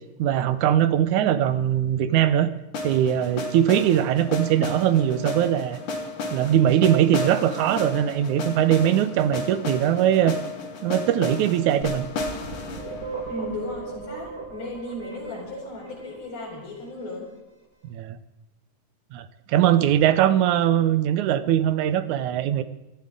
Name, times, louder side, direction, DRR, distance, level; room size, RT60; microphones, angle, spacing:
voice 1, 0.2-2.5 2.8-5.8 6.3-10.4 10.8-12.0 17.9-18.2 19.1-22.6, right 11 dB, 70° right, 12 dB, 2.0 m, -21 dB
sound 1, 2.7-14.7, left 3 dB, 60° left, 3.3 m, -33 dB
sound 2, 11.8-16.7, right 5 dB, 35° right, 1.9 m, -37 dB
voice 2, 13.3-17.3, left 2 dB, 85° left, -4 dB, 6.6 m, -35 dB
27.0 x 11.5 x 3.8 m, 0.98 s
omnidirectional pair, 4.1 m